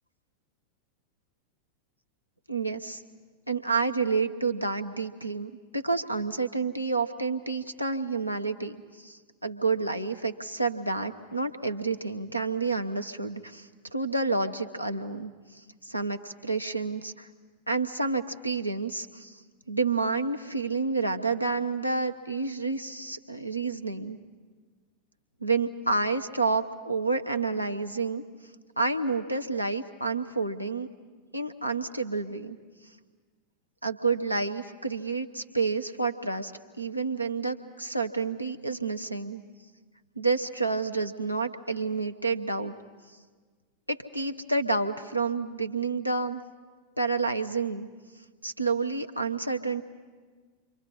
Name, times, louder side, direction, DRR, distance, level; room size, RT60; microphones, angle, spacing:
voice 1, 2.5-3.0 3.5-17.3 17.7-19.4 19.7-24.2 25.4-28.2 28.8-30.9 31.3-32.6 33.8-36.5 36.8-39.4 40.2-42.8 43.9-46.4 47.0-47.9 48.4-49.8, right 4 dB, 90° right, 4 dB, 1.0 m, -29 dB
28.5 x 25.0 x 4.2 m, 1.5 s
figure-of-eight pair, 90°, 0 cm